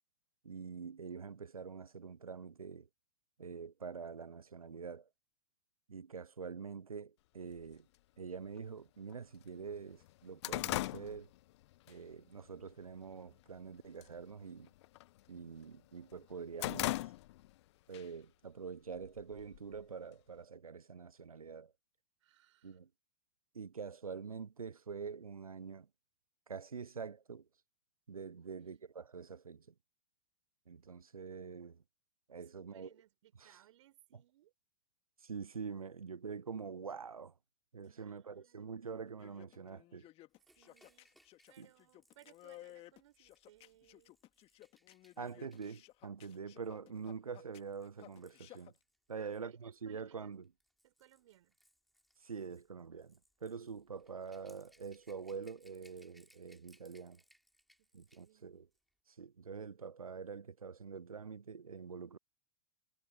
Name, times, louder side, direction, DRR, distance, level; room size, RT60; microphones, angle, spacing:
voice 1, 0.4-2.9 3.4-5.1 5.9-7.9 8.2-11.3 11.9-14.7 15.3-17.1 17.9-21.7 22.6-22.9 23.5-25.9 26.5-27.5 28.1-29.7 30.7-31.8 32.3-32.9 33.4-33.6 35.2-37.3 37.7-40.1 41.6-41.7 45.2-48.7 49.1-50.5 52.2-57.2 57.9-58.7 59.1-62.2, right 5 dB, 85° right, 0.6 m, -45 dB
sound 1, 7.6-7.7 8.6-8.7 9.1-9.2 9.6-12.0 12.4-12.7 13.1-13.6 13.9-14.2 14.5-15.7 16.1-17.6 17.9-18.1 19.0-19.8, left 17 dB, 50° left, 1.0 m, -39 dB
voice 2, 22.2-22.8 28.4-28.6 32.4-34.5 37.8-39.0 40.6-41.1 41.5-44.1 49.2-50.3 50.8-51.5 57.8-58.6, right 13 dB, 60° right, 5.8 m, -66 dB
sound 2, 39.1-48.7, left 16 dB, 35° left, 2.3 m, -57 dB
Rattle / Rattle (instrument), 40.4-49.4 50.3-58.4 58.7-58.9, equal, ahead, 5.8 m, -71 dB
figure-of-eight pair, 95°, 18 cm